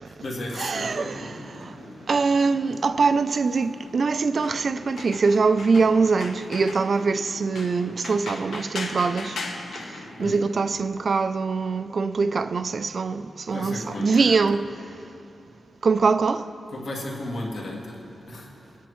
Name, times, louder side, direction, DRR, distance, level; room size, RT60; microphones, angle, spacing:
voice 1, 0.0-1.5 10.2-10.5 13.5-14.6 16.7-18.8, left 1 dB, 60° left, 1.9 m, -35 dB
voice 2, 0.6-1.3 1.6-1.7 2.1-9.4 10.2-14.6 15.8-16.5, right 4 dB, 40° right, 0.4 m, -23 dB
sound 1, 0.8-10.9, left 3 dB, 90° left, 1.2 m, -39 dB
22.5 x 10.0 x 3.1 m
wide cardioid pair, 175°, 0 cm